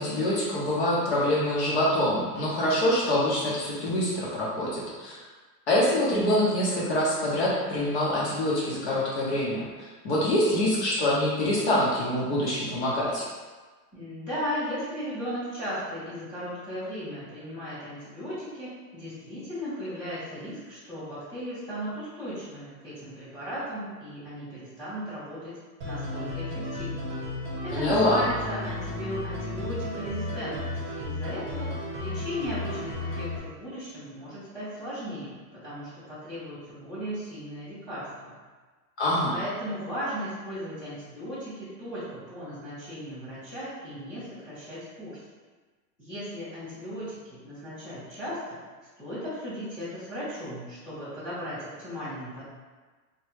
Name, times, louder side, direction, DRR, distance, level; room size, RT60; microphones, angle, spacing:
voice 1, 0.0-5.2 5.7-13.3 27.7-28.3 39.0-39.4, left 1 dB, 40° left, -6 dB, 0.7 m, -25 dB
voice 2, 13.9-25.5 25.8-27.1 27.6-38.3 39.3-45.2 46.0-48.6 49.0-52.4, equal, 10° left, -15 dB, 0.9 m, -36 dB
sound 1, 25.8-33.4, left 2 dB, 45° right, 0.9 m, -34 dB
3.0 x 2.2 x 3.1 m, 1.4 s
supercardioid pair, 165°, 49 cm